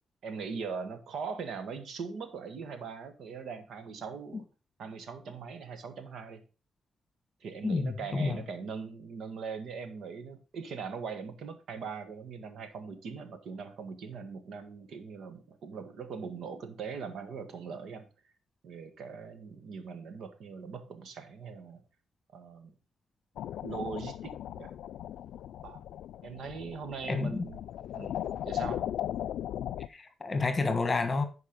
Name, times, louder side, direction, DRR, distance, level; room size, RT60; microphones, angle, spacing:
voice 1, 0.2-4.4 4.8-6.4 7.4-18.1 18.6-21.8 22.3-22.7 23.6-24.7 25.6-25.8 26.2-27.6 27.9-28.8, right 5 dB, 75° right, 1.5 m, -41 dB
voice 2, 7.6-8.4 27.1-27.4 29.9-31.2, left 3 dB, 30° left, 1.2 m, -29 dB
sound 1, 23.4-29.9, left 11 dB, 90° left, 0.3 m, -37 dB
10.5 x 4.8 x 5.0 m
cardioid pair, 95°, 0 cm